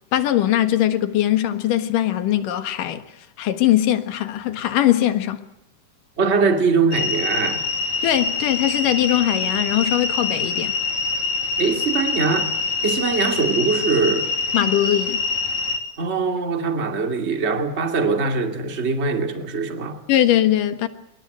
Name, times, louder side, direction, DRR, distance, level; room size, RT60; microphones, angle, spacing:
voice 1, 0.1-3.0 3.4-5.4 8.0-10.7 14.5-15.3 20.1-20.9, left 12 dB, 80° left, 3.1 m, -20 dB
voice 2, 6.2-7.6 11.6-12.5 12.8-14.3 16.0-20.0, right 4 dB, 20° right, 2.3 m, -22 dB
sound 1, 6.9-15.8, left 4 dB, 65° left, 4.3 m, -25 dB
26.5 x 23.5 x 9.2 m
omnidirectional pair, 3.7 m